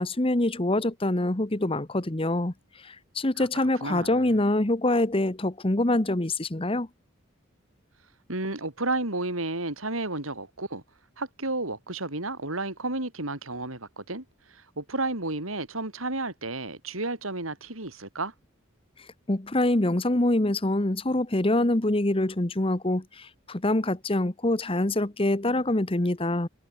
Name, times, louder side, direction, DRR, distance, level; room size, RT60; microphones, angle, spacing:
voice 1, 0.0-2.5 2.9-6.9 19.3-26.5, left 1 dB, 25° left, 1.1 m, -25 dB
voice 2, 3.4-4.4 8.3-10.8 11.2-18.3, right 2 dB, 85° right, 4.8 m, -32 dB
head